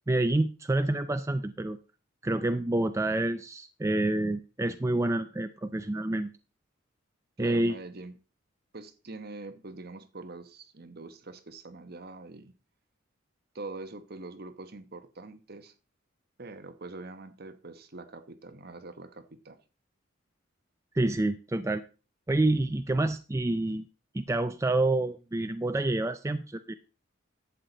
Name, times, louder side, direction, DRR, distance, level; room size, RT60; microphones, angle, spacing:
voice 1, 0.1-1.8 2.2-6.3 7.4-7.7 20.9-21.8 22.3-23.8 24.1-26.7, right 2 dB, 15° right, 9 dB, 0.4 m, -28 dB
voice 2, 7.4-8.1 8.7-12.5 13.5-15.7 16.4-19.6, right 3 dB, 50° right, 9 dB, 1.0 m, -44 dB
11.5 x 8.2 x 3.9 m, 0.34 s
head